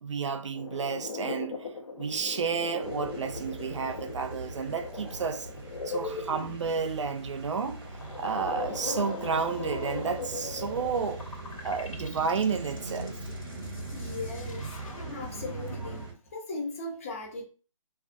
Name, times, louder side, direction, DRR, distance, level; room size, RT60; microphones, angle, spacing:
voice 1, 0.0-1.7 1.9-5.5 5.9-7.8 8.2-11.3 11.6-13.2, right 5 dB, 60° right, 0.5 m, -31 dB
sound 1, 0.5-7.1 7.8-16.1, left 3 dB, 75° left, 0.8 m, -39 dB
sound 2, 2.8-16.1, right 3 dB, 45° right, 0.9 m, -41 dB
voice 2, 13.9-17.4, left 3 dB, 25° left, 0.6 m, -38 dB
2.3 x 2.3 x 2.5 m
hypercardioid pair, 165°, 17 cm